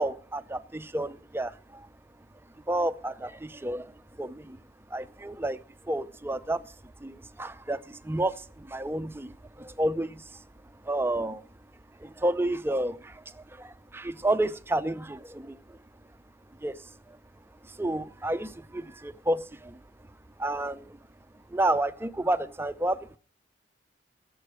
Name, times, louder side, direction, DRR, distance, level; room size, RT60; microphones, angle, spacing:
voice 1, 0.0-1.9 2.7-4.6 4.9-6.7 7.0-10.5 10.8-11.4 12.0-15.8 16.6-17.2 17.6-19.8 20.4-21.0 21.5-23.2, right 1 dB, 15° right, 0.6 m, -31 dB
16.0 x 7.7 x 6.2 m
head